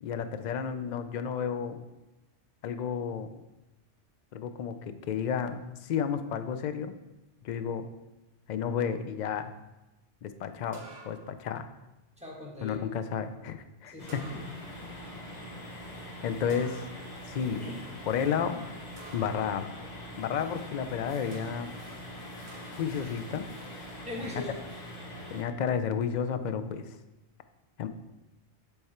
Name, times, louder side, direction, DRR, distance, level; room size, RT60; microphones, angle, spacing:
voice 1, 0.0-1.8 2.6-3.3 4.3-6.9 7.4-7.9 8.5-9.5 10.2-11.7 12.6-14.2 16.2-16.8 17.3-17.7 18.1-18.6 19.1-19.7 20.2-21.7 22.8-23.5 25.3-27.0 27.8-27.9, left 7 dB, 60° left, 9 dB, 0.4 m, -32 dB
sound 1, 10.7-11.5 14.1-14.8 16.5-17.3 19.0-19.5 21.3-21.8 22.5-23.0, right 3 dB, 65° right, 1.0 m, -50 dB
voice 2, 12.2-12.8 13.9-14.4 15.0-15.1 17.5-17.9 19.8-19.9 24.0-24.6, left 1 dB, 5° right, -4 dB, 1.4 m, -41 dB
sound 2, 14.0-25.4, left 1 dB, 40° left, 1.1 m, -43 dB
8.0 x 3.4 x 4.3 m, 1.0 s
omnidirectional pair, 1.2 m